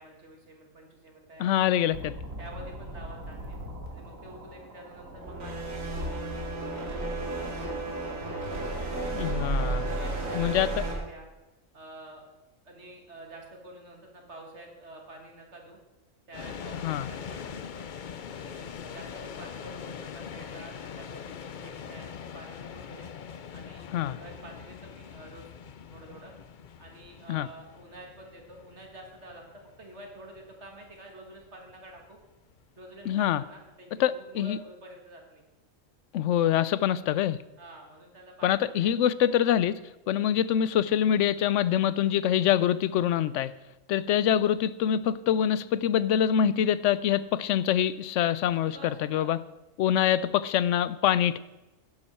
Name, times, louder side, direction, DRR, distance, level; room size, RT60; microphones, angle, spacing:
voice 1, 0.0-1.5 2.4-3.6 3.9-7.3 9.8-11.3 11.7-12.4 12.6-15.8 16.3-17.9 18.3-23.1 23.5-25.4 25.9-26.3 26.8-32.2 32.8-35.4 37.6-39.0 48.6-49.4, right 1 dB, 60° right, 1 dB, 2.1 m, -48 dB
voice 2, 1.4-2.2 9.1-9.9 10.4-10.7 16.8-17.1 23.9-24.2 27.3-27.5 33.1-33.4 34.0-34.6 36.1-37.4 38.4-39.8 40.1-43.5 43.9-49.4 49.8-51.4, left 10 dB, 70° left, 16 dB, 0.9 m, -25 dB
sound 1, 1.9-10.9, right 2 dB, 90° right, 2.4 m, -34 dB
sound 2, 16.3-33.3, left 7 dB, 50° left, 0.6 m, -43 dB
12.0 x 11.0 x 4.4 m, 1.0 s
omnidirectional pair, 1.3 m